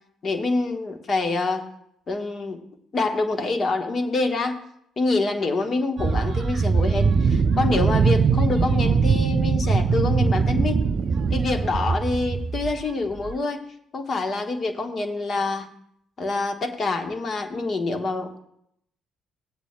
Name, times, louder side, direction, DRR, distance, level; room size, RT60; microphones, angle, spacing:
voice 1, 0.2-1.6 2.1-2.6 2.9-4.6 5.0-10.8 11.3-13.6 13.9-15.7 16.2-18.4, left 3 dB, 40° left, 5 dB, 1.3 m, -26 dB
sound 1, 6.0-12.8 13.2-13.3, right 5 dB, 50° right, 0.4 m, -21 dB
17.0 x 8.2 x 2.3 m, 0.73 s
figure-of-eight pair, 50°, 0 cm